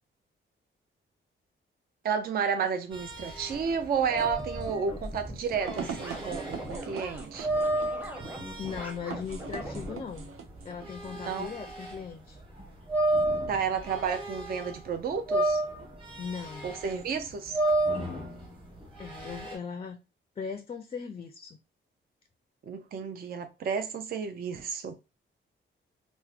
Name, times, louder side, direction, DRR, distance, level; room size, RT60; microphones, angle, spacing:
voice 1, 2.0-7.5 11.3-11.5 13.5-15.6 16.6-17.6 22.7-25.0, right 6 dB, 45° right, 0.4 m, -31 dB
sound 1, 2.9-12.0 12.4-14.9 15.1-19.5, right 2 dB, 25° right, 1.3 m, -32 dB
sound 2, 3.9-12.1, right 5 dB, 85° right, 0.7 m, -43 dB
sound 3, 4.1-10.0, equal, 10° right, 0.7 m, -41 dB
voice 2, 8.6-10.3 10.6-12.4 16.2-16.7 19.0-20.0 20.4-21.6, left 6 dB, 30° left, 0.4 m, -38 dB
4.4 x 2.1 x 2.3 m
wide cardioid pair, 150°, 21 cm